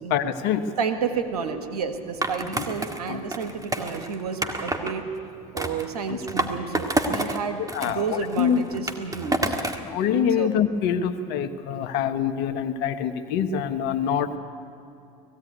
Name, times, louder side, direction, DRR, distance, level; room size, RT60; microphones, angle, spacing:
voice 1, 0.1-0.6 3.1-3.2 6.1-6.2 7.6-8.6 9.9-14.4, left 8 dB, 65° left, 9 dB, 1.3 m, -25 dB
voice 2, 0.8-5.1 5.5-9.5 10.3-10.5, right 6 dB, 90° right, 7 dB, 1.6 m, -31 dB
Skateboard, 2.2-4.9 5.6-7.4 7.7-9.9, right 2 dB, 20° right, 2.0 m, -28 dB
19.5 x 16.0 x 9.5 m, 2.6 s
hypercardioid pair, 75°, 19 cm